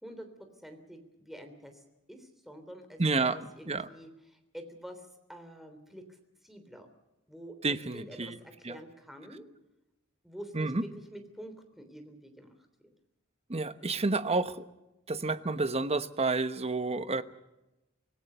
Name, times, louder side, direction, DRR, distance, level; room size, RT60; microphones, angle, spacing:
voice 1, 0.0-1.8 2.1-6.0 6.4-6.9 7.3-7.5 7.9-9.4 10.2-12.9, equal, ahead, 6 dB, 3.3 m, -48 dB
voice 2, 3.0-3.9 7.6-8.4 8.6-8.8 10.5-10.8 13.5-14.7 15.1-17.2, right 3 dB, 30° right, 11 dB, 1.1 m, -30 dB
25.5 x 18.5 x 6.8 m, 0.97 s
head